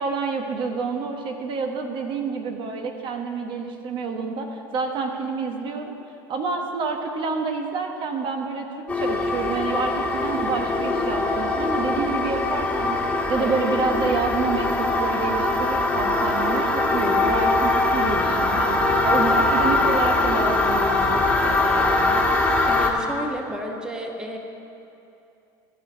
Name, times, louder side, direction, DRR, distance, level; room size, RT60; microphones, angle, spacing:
voice 1, 0.0-5.9 6.3-8.7 8.9-22.2, right 4 dB, 50° right, 3 dB, 1.1 m, -28 dB
sound 1, 8.9-22.9, left 2 dB, 10° left, 1.6 m, -22 dB
voice 2, 22.7-24.4, right 1 dB, 5° right, 2 dB, 1.2 m, -31 dB
14.0 x 4.8 x 8.0 m, 2.7 s
supercardioid pair, 90°, 11 cm